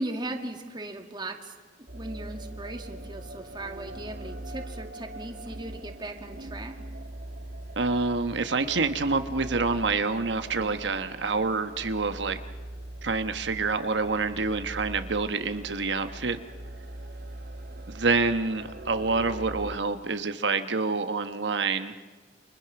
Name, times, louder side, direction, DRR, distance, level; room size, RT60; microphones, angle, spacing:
voice 1, 0.0-1.5 1.9-6.7, right 1 dB, 25° right, 4 dB, 2.0 m, -37 dB
sound 1, 1.9-19.8, right 1 dB, 65° right, 1.5 m, -41 dB
voice 2, 7.8-12.4 13.0-16.4 17.9-21.9, right 4 dB, 85° right, 9 dB, 1.1 m, -27 dB
29.0 x 25.5 x 6.0 m, 1.4 s
head